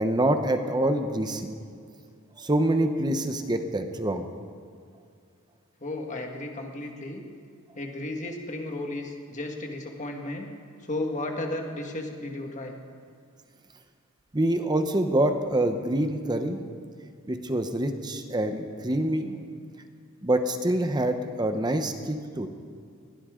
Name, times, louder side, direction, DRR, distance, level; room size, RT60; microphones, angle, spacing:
voice 1, 0.0-1.5 2.4-4.3 14.3-16.6 17.3-19.4 20.2-22.5, right 1 dB, 20° right, 7 dB, 0.8 m, -26 dB
voice 2, 5.8-7.2 7.8-10.5 10.8-12.7, left 2 dB, 35° left, 2 dB, 1.7 m, -34 dB
20.5 x 17.0 x 3.8 m, 2.3 s
head